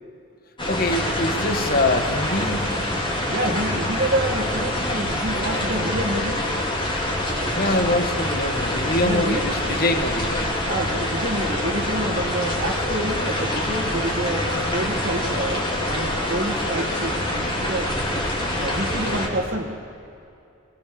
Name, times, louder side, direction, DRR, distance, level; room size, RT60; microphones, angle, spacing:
sound 1, 0.6-19.3, left 1 dB, 20° left, 4.0 m, -25 dB
voice 1, 0.7-2.7 7.6-10.5, left 1 dB, 40° left, 7 dB, 1.7 m, -24 dB
voice 2, 3.3-6.5 9.0-9.4 10.7-17.9 18.5-19.7, right 1 dB, 45° right, -2 dB, 1.9 m, -28 dB
27.5 x 20.5 x 7.0 m, 2.5 s
head